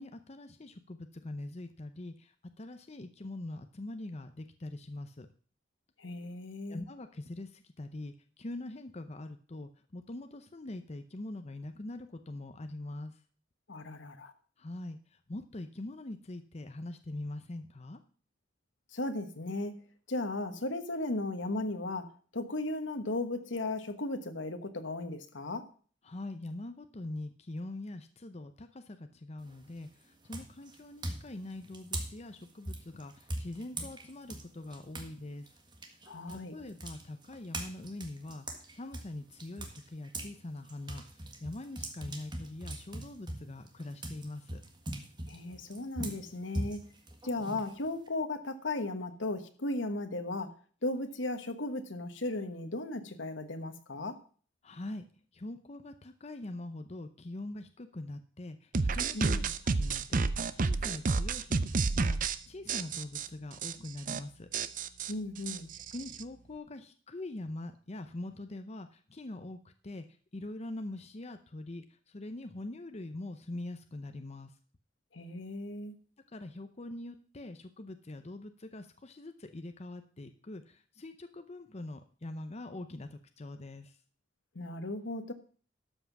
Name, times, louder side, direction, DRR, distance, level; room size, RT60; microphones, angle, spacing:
voice 1, 0.0-5.3 6.7-13.2 14.6-18.0 26.0-35.6 36.3-44.6 54.6-55.0 55.3-64.5 65.7-74.6 76.3-84.0, left 2 dB, 35° left, 0.7 m, -43 dB
voice 2, 6.0-6.8 13.7-14.3 18.9-19.8 20.1-25.7 36.1-36.5 45.3-46.8 47.2-50.5 50.8-54.2 59.1-59.5 65.1-65.7 75.1-75.9 84.5-85.3, left 2 dB, 90° left, 1.3 m, -36 dB
sound 1, 29.4-29.8 30.3-35.1 35.5-40.3 40.7-48.1, right 1 dB, 25° right, 1.6 m, -41 dB
sound 2, 58.7-62.4 62.7-63.3 63.6-63.7 64.0-64.2 64.5-66.2, right 4 dB, 45° right, 0.6 m, -30 dB
12.5 x 5.8 x 6.0 m
head